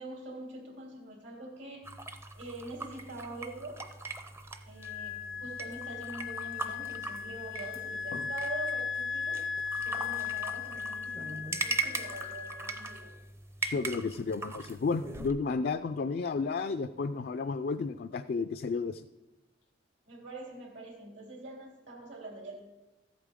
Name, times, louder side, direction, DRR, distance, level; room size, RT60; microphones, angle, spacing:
voice 1, 0.0-1.9 2.3-3.9 4.7-9.5 9.7-13.2 20.1-22.6, right 2 dB, 70° right, 0 dB, 3.1 m, -44 dB
sound 1, 1.8-15.3, right 3 dB, 15° right, 0.5 m, -40 dB
Wind instrument woodwind instrument, 4.8-13.1, left 7 dB, 85° left, 0.8 m, -37 dB
voice 2, 13.6-19.0, left 4 dB, 50° left, 10 dB, 0.3 m, -32 dB
14.0 x 8.4 x 3.7 m, 1.0 s
head